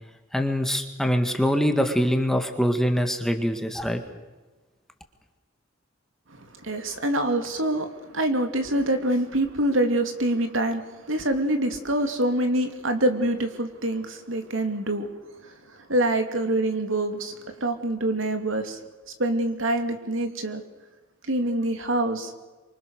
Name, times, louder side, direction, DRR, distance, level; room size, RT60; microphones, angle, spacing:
voice 1, 0.3-4.0, equal, ahead, 5 dB, 1.7 m, -24 dB
voice 2, 6.3-15.1 15.4-15.5 15.9-18.8 19.2-20.6 21.3-22.3, right 1 dB, 70° right, 6 dB, 2.7 m, -25 dB
26.5 x 24.5 x 6.6 m, 1.2 s
head